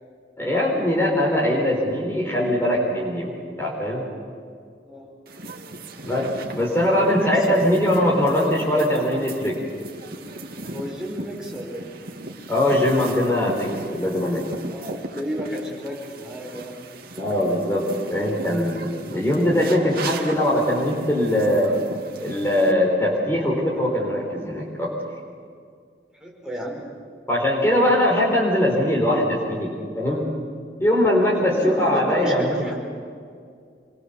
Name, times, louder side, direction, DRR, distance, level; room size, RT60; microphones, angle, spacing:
voice 1, 0.4-4.0 6.0-9.6 12.5-14.4 17.1-17.8 18.1-21.7 22.2-24.9 27.3-30.3 30.8-32.6, left 1 dB, 15° left, -3 dB, 4.3 m, -21 dB
sound 1, 5.3-22.7, right 2 dB, 55° right, 2.1 m, -37 dB
voice 2, 6.9-7.8 10.7-11.9 14.7-16.7 26.2-26.9 31.2-32.7, equal, 5° right, -2 dB, 5.1 m, -32 dB
27.0 x 23.0 x 7.1 m, 2.2 s
head